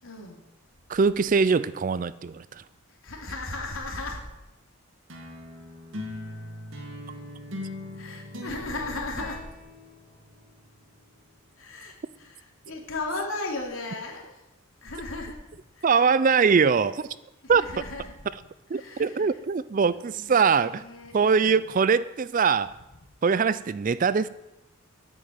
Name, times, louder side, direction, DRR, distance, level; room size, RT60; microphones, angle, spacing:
voice 1, 0.0-0.4 3.0-4.2 7.9-9.4 11.6-14.4 14.8-15.4 15.7-15.9 17.4-18.3 18.7-19.3 19.7-21.6, left 2 dB, 65° left, 3.0 m, -36 dB
voice 2, 0.9-2.6 15.8-17.1 17.5-17.6 18.7-20.8 21.1-22.7 23.2-24.3, right 5 dB, 35° right, 0.4 m, -22 dB
sound 1, 5.1-10.7, left 1 dB, 60° right, 2.2 m, -40 dB
10.0 x 8.8 x 9.2 m
head